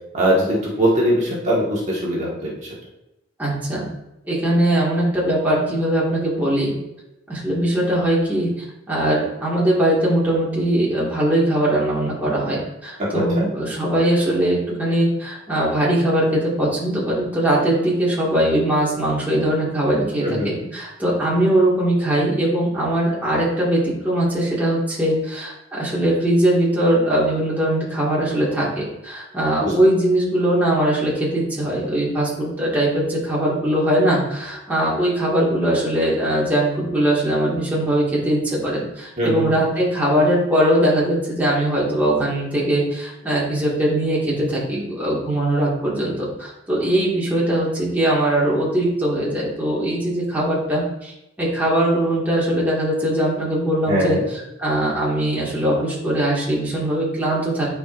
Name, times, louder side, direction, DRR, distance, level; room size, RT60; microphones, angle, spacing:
voice 1, 0.1-2.7 13.1-13.5 20.2-20.5 29.6-29.7 39.2-39.6 53.9-54.3, equal, 35° right, -6 dB, 1.6 m, -21 dB
voice 2, 3.4-3.9 4.3-6.7 7.3-51.1 51.4-57.7, right 1 dB, 10° right, -7 dB, 1.9 m, -21 dB
11.0 x 4.6 x 2.6 m, 0.92 s
head